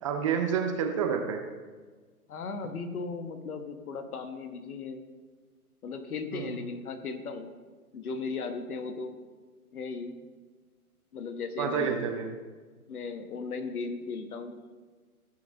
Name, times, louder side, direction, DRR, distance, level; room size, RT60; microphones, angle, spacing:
voice 1, 0.0-1.4 6.3-6.5 11.6-12.3, right 7 dB, 20° right, 4 dB, 0.5 m, -29 dB
voice 2, 2.3-5.0 5.8-7.5 7.9-9.2 9.7-10.1 11.1-12.0 12.9-14.6, left 4 dB, 70° left, 7 dB, 1.4 m, -36 dB
15.5 x 5.8 x 3.9 m, 1.4 s
hypercardioid pair, 135°, 45 cm